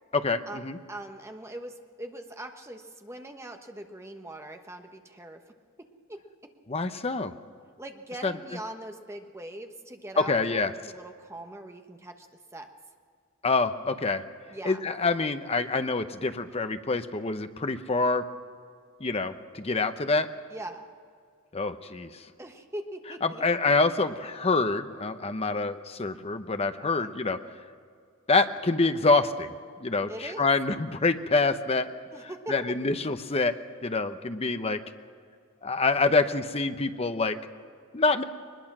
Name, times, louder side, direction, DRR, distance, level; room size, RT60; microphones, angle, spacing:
voice 1, 0.1-0.8 6.7-7.3 8.2-8.3 10.2-10.7 13.4-14.2 14.6-18.3 19.0-20.3 21.5-22.1 23.2-27.4 28.3-29.5 29.8-30.1 30.4-31.9 32.5-33.6 33.8-34.8 35.6-37.4 37.9-38.2, left 3 dB, 30° left, 9 dB, 0.8 m, -26 dB
voice 2, 0.9-5.4 5.8-6.2 7.8-12.3 12.5-12.7 14.5-14.8 20.5-20.8 22.4-23.4 26.8-27.1 30.1-30.5 32.1-32.5, right 1 dB, 15° right, 5 dB, 1.2 m, -41 dB
22.0 x 21.0 x 6.1 m, 2.2 s
head